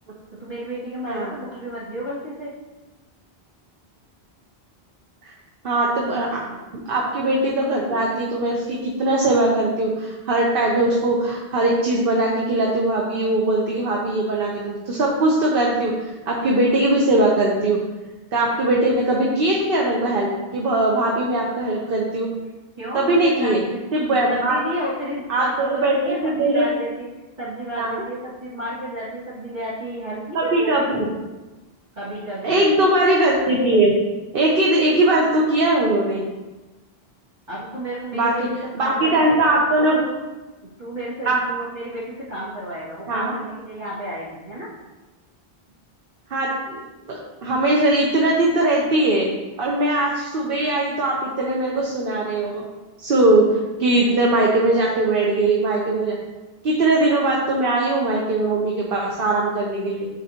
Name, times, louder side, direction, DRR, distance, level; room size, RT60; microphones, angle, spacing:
voice 1, 0.3-2.5 6.4-6.6 22.8-23.8 24.1-27.0 27.4-30.9 32.0-32.6 37.5-38.5 38.8-39.5 40.0-40.1 40.6-44.7, equal, 45° right, -13 dB, 2.2 m, -31 dB
voice 2, 1.0-1.4 5.2-5.3 5.6-6.4 6.9-15.9 16.3-17.8 18.3-22.3 22.9-23.6 23.9-24.6 25.3-26.7 27.8-27.9 30.3-31.1 32.4-33.9 34.3-36.2 38.1-38.3 38.7-40.0 41.2-41.4 43.1-43.3 46.3-46.8 47.1-49.3 49.6-52.6 53.0-56.2 56.6-60.1, right 2 dB, 65° right, -2 dB, 1.1 m, -20 dB
11.5 x 4.0 x 2.9 m, 1.2 s
omnidirectional pair, 1.0 m